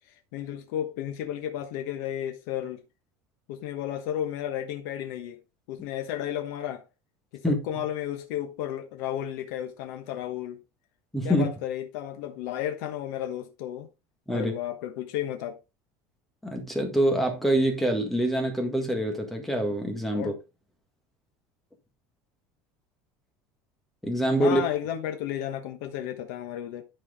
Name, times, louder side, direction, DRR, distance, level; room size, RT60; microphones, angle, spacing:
voice 1, 0.1-2.8 3.5-5.4 5.7-6.8 7.3-10.6 11.2-13.9 14.3-15.6 20.1-20.4 24.4-26.8, left 11 dB, 70° left, 1.2 m, -33 dB
voice 2, 11.1-11.5 14.3-14.5 16.4-20.3 24.0-24.6, right 1 dB, 5° left, 1.7 m, -25 dB
11.5 x 4.8 x 3.6 m
cardioid pair, 180°, 10 cm